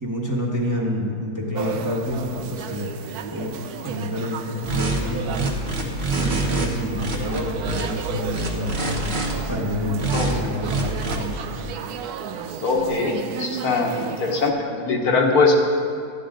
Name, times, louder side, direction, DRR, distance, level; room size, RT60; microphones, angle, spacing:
voice 1, 0.0-2.2 2.5-2.9 3.3-3.5 3.8-4.4 4.7-5.6 6.2-8.7 9.5-11.4, left 1 dB, 10° right, -3 dB, 1.2 m, -28 dB
sound 1, 1.5-14.5, right 7 dB, 80° right, 1.1 m, -33 dB
sound 2, 4.6-5.0 5.3-6.7 7.0-7.8 8.3-9.3 10.0-10.3 10.6-11.2, right 3 dB, 45° right, 1.4 m, -25 dB
voice 2, 12.6-13.9 14.2-15.6, left 4 dB, 70° left, 0 dB, 1.6 m, -21 dB
13.5 x 9.9 x 3.8 m, 2.2 s
omnidirectional pair, 1.7 m